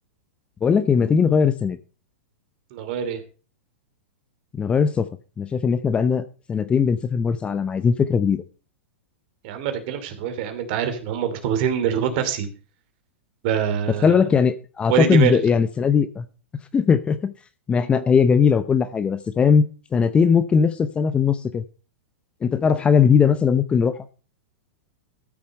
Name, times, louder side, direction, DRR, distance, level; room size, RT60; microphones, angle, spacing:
voice 1, 0.6-1.8 4.6-5.1 5.4-8.4 14.0-16.2 16.7-17.3 17.7-19.6 19.9-21.6 22.4-23.9, left 6 dB, 15° left, 13 dB, 0.6 m, -19 dB
voice 2, 2.7-3.2 9.4-12.5 13.4-14.2 14.9-15.4, right 8 dB, 50° right, 8 dB, 2.8 m, -24 dB
13.5 x 7.1 x 5.3 m, 0.37 s
hypercardioid pair, 140°, 7 cm